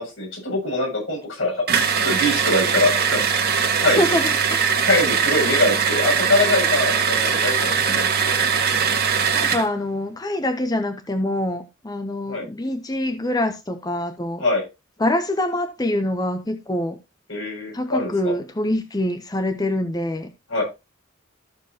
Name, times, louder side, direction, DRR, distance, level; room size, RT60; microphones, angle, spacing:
voice 1, 0.0-1.6 2.0-3.3 3.8-4.1 4.9-8.3 12.3-12.4 14.4-14.6 17.3-18.3 20.5-20.6, left 2 dB, 75° left, 6.5 m, -23 dB
sound 1, 1.7-9.7, right 6 dB, 50° right, 1.4 m, -21 dB
voice 2, 4.0-4.7 9.3-14.4 15.0-17.0 17.7-20.3, left 1 dB, 20° left, 0.7 m, -25 dB
14.0 x 6.7 x 2.8 m
head